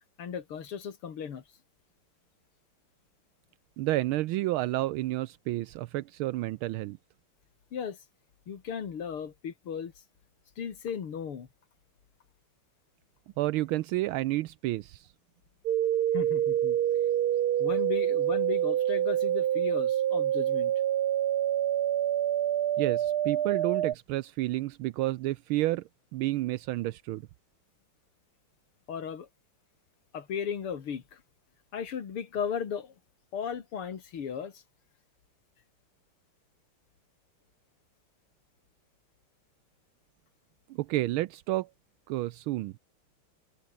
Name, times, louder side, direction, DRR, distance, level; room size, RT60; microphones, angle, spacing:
voice 1, 0.2-1.4 7.7-8.0 8.5-10.0 10.6-11.5 16.1-16.8 17.6-20.7 28.9-29.3 30.1-31.2 31.7-32.9 33.3-34.6, left 7 dB, 85° left, 3.0 m, -36 dB
voice 2, 3.8-7.0 13.4-15.1 22.8-25.8 26.1-27.2 40.7-41.7 42.1-42.7, right 17 dB, 80° right, 1.4 m, -30 dB
sound 1, 15.7-23.9, right 11 dB, 60° right, 1.1 m, -27 dB
omnidirectional pair, 2.4 m